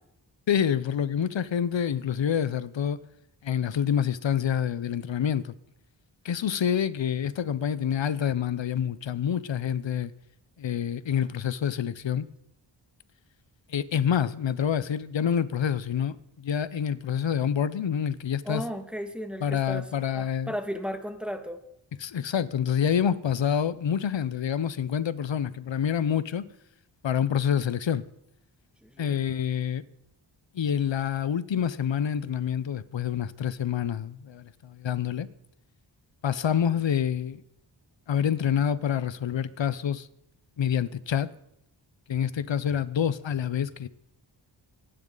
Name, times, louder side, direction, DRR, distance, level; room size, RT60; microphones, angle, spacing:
voice 1, 0.5-3.0 3.4-5.5 6.2-10.1 10.6-12.3 13.7-18.6 19.4-20.5 22.0-26.4 27.0-28.0 29.0-29.8 30.5-35.3 36.2-37.4 38.1-40.1 40.6-41.3 42.1-43.9, left 8 dB, 70° left, 0.9 m, -27 dB
voice 2, 18.5-21.6 28.8-29.2, equal, ahead, 1.9 m, -35 dB
26.0 x 11.0 x 4.0 m
cardioid pair, 65°, 46 cm